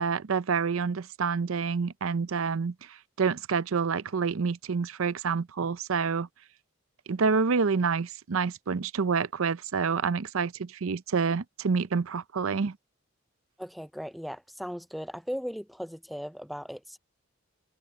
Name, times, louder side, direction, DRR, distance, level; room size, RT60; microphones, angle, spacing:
voice 1, 0.0-6.3 7.1-12.8, right 5 dB, 80° right, 0.6 m, -28 dB
voice 2, 13.6-17.0, equal, ahead, 0.3 m, -37 dB
head